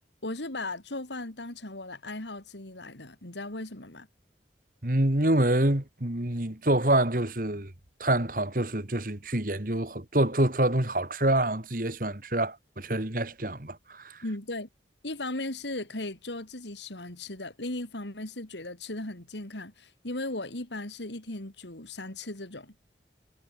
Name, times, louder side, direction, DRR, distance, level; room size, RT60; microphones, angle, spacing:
voice 1, 0.2-4.1 14.2-14.7 15.0-22.7, left 2 dB, 85° left, 3.4 m, -37 dB
voice 2, 4.8-7.7 8.0-14.2, right 1 dB, 50° right, 2.3 m, -26 dB
head